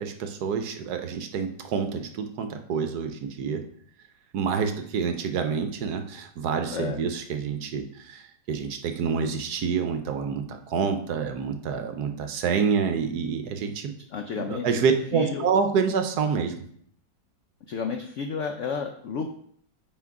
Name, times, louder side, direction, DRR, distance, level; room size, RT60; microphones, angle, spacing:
voice 1, 0.0-3.6 4.3-8.2 8.5-13.9 14.4-16.5, right 6 dB, 70° right, 6 dB, 1.1 m, -27 dB
voice 2, 6.7-7.0 14.1-14.9 15.1-15.5 17.7-19.3, left 5 dB, 80° left, 5 dB, 0.6 m, -31 dB
5.9 x 4.4 x 4.7 m, 0.63 s
omnidirectional pair, 1.9 m